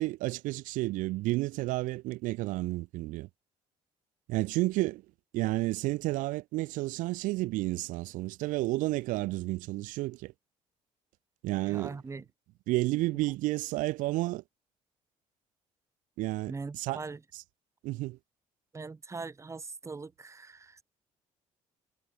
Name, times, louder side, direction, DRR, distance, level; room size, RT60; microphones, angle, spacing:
voice 1, 0.0-3.3 4.3-5.0 5.3-10.3 11.4-12.0 12.7-14.4 16.2-17.0 17.8-18.2, right 19 dB, 85° right, 0.9 m, -31 dB
voice 2, 11.7-12.2 16.5-17.2 18.7-20.8, right 4 dB, 20° right, 1.1 m, -41 dB
cardioid pair, 95°, 13 cm